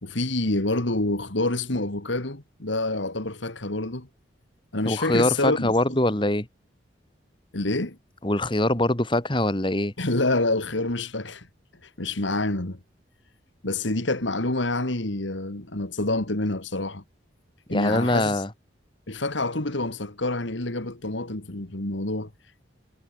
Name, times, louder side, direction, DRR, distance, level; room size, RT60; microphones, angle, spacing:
voice 1, 0.0-4.1 4.7-6.0 7.5-8.0 10.0-11.5 11.8-12.8 13.6-17.0 17.7-18.4 19.1-22.3, left 2 dB, 75° left, 2.5 m, -27 dB
voice 2, 4.8-6.5 8.2-9.9 17.7-18.5, left 1 dB, 25° left, 2.1 m, -23 dB
head